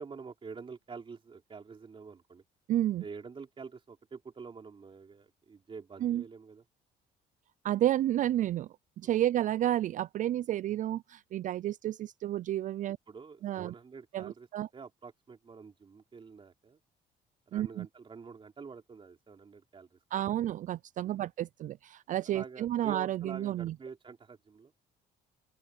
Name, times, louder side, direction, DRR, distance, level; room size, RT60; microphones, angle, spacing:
voice 1, 0.0-2.4 3.0-6.6 9.0-9.2 13.1-16.8 17.5-20.0 21.0-21.2 22.3-24.7, right 5 dB, 30° right, 3.7 m, -47 dB
voice 2, 2.7-3.0 6.0-6.2 7.6-8.7 9.0-13.0 13.4-13.7 14.1-14.7 17.5-17.9 20.1-23.8, right 12 dB, 50° right, 0.4 m, -31 dB
open air
cardioid pair, 110°, 17 cm